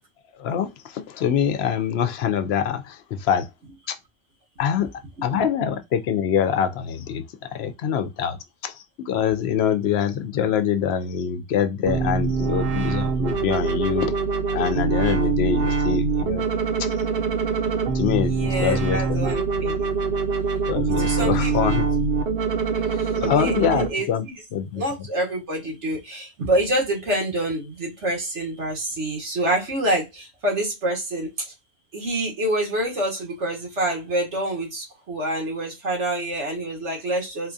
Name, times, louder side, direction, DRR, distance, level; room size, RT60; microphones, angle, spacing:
voice 1, 0.4-3.5 3.9-4.0 4.6-4.9 5.2-14.1 14.5-16.4 16.8-16.9 17.9-19.2 19.6-19.8 20.7-21.9 23.2-24.2 24.5-24.8, left 8 dB, 70° left, 0.8 m, -24 dB
sound 1, 11.9-23.9, right 4 dB, 60° right, 1.0 m, -24 dB
voice 2, 18.3-19.7 21.0-21.5 22.8-24.3 24.7-31.5 31.9-37.5, right 1 dB, 85° right, 1.9 m, -27 dB
4.2 x 2.3 x 2.6 m
omnidirectional pair, 1.2 m